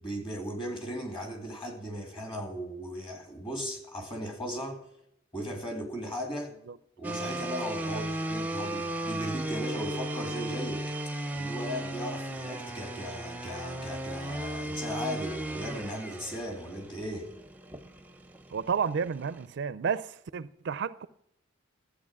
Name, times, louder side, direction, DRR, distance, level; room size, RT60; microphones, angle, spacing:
voice 1, 0.0-4.8 5.3-6.6 7.0-10.9 11.3-17.3, equal, 25° left, 2.6 m, -37 dB
sound 1, 7.0-19.4, right 1 dB, 10° right, 0.6 m, -36 dB
voice 2, 18.5-21.1, right 6 dB, 60° right, 0.4 m, -31 dB
13.5 x 8.1 x 5.9 m
head